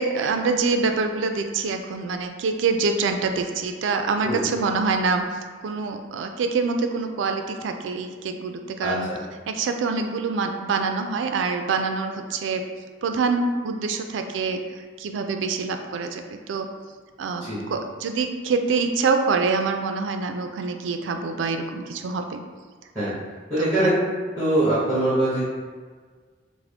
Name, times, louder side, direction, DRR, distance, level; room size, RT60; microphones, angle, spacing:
voice 1, 0.0-5.2 5.6-9.2 9.5-12.7 13.0-14.6 15.0-16.7 17.2-22.4 23.6-24.0, right 4 dB, 80° right, 6 dB, 0.3 m, -25 dB
voice 2, 8.8-9.2 17.4-17.6 22.9-23.1 23.5-23.9 24.4-25.4, right 1 dB, 5° left, -13 dB, 1.2 m, -23 dB
3.5 x 2.1 x 3.4 m, 1.5 s
head